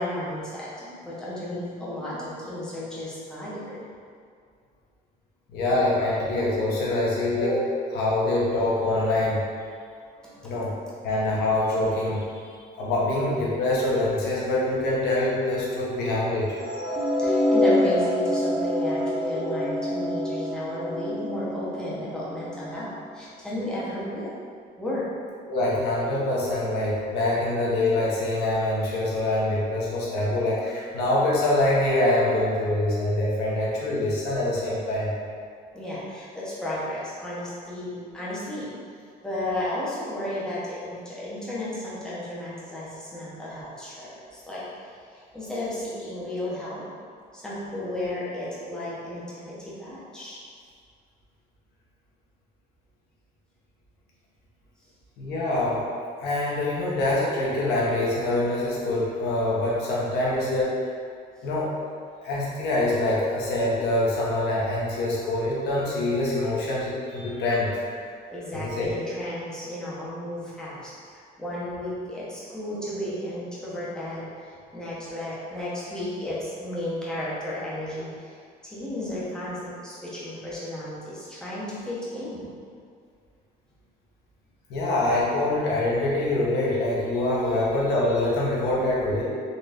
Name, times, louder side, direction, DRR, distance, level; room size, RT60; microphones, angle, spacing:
voice 1, 0.0-3.8 10.1-10.6 16.9-24.3 24.8-25.1 35.7-38.7 39.2-44.6 45.1-46.8 47.3-50.4 61.4-61.5 68.3-82.5, left 1 dB, 5° left, -9 dB, 1.1 m, -33 dB
voice 2, 5.5-9.4 10.4-10.7 11.0-12.4 12.8-16.5 19.3-19.5 25.5-35.1 55.2-55.9 56.2-60.8 61.4-61.7 62.2-68.0 68.5-68.9 84.7-89.2, left 1 dB, 80° left, -6 dB, 1.1 m, -25 dB
sound 1, 16.6-22.8, left 1 dB, 30° right, 1.2 m, -26 dB
4.1 x 3.1 x 2.6 m, 2.2 s
cardioid pair, 110°, 17 cm